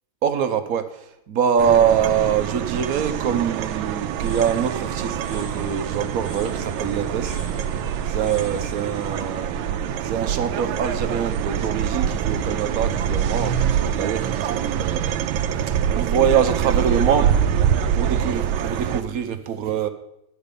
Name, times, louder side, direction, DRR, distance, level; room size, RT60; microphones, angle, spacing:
voice 1, 0.2-7.4 8.0-9.6 10.0-15.1 15.9-17.3 17.9-19.9, right 8 dB, 65° right, 9 dB, 0.9 m, -24 dB
sound 1, 1.6-19.0, right 9 dB, 90° right, 1.4 m, -25 dB
sound 2, 4.0-10.9, left 1 dB, 35° left, 2.3 m, -41 dB
11.0 x 8.2 x 5.1 m, 0.81 s
omnidirectional pair, 2.1 m